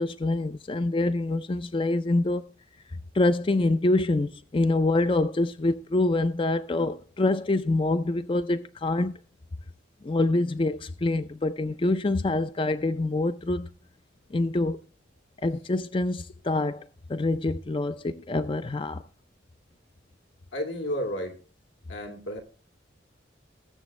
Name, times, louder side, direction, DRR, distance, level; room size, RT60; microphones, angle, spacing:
voice 1, 0.0-2.5 3.1-9.1 10.0-13.7 14.3-14.8 15.4-19.0, left 2 dB, 30° left, 0.4 m, -26 dB
voice 2, 20.5-21.4 21.9-22.4, equal, 85° left, 2.6 m, -32 dB
20.0 x 7.3 x 3.2 m
head